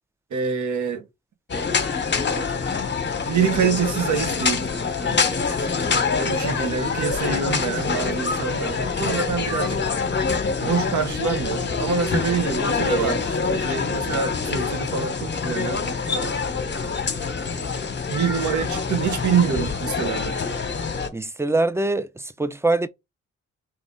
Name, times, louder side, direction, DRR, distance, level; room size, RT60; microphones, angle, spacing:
voice 1, 0.3-1.0 3.3-4.6 5.0-5.3 5.5-5.8 6.1-9.8 10.6-16.4 18.1-20.4, right 6 dB, 70° right, 1.5 m, -26 dB
sound 1, 1.5-21.1, left 5 dB, 35° left, 1.1 m, -25 dB
voice 2, 21.1-22.9, right 2 dB, 10° right, 0.5 m, -23 dB
3.9 x 3.3 x 3.7 m
cardioid pair, 70°, 30 cm